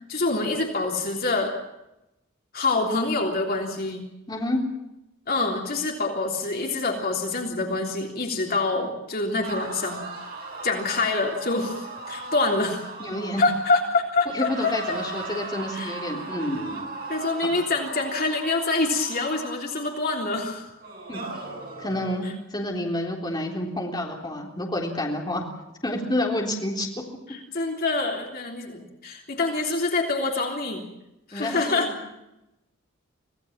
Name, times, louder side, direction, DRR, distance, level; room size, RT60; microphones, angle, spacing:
voice 1, 0.1-1.6 2.5-4.1 5.3-10.0 10.6-12.9 13.4-15.0 15.7-16.0 17.1-20.6 22.2-22.3 27.3-30.8 31.3-31.9, left 3 dB, 50° left, 1 dB, 3.4 m, -26 dB
voice 2, 4.3-4.6 13.0-13.4 14.3-17.0 17.4-17.7 21.1-21.2 21.8-25.4 25.8-26.9 31.3-31.9, left 1 dB, 20° left, -1 dB, 3.7 m, -29 dB
sound 1, 9.4-14.1 14.4-20.2 20.8-22.2, right 3 dB, 50° right, 7.1 m, -37 dB
25.5 x 17.5 x 7.4 m, 0.90 s
head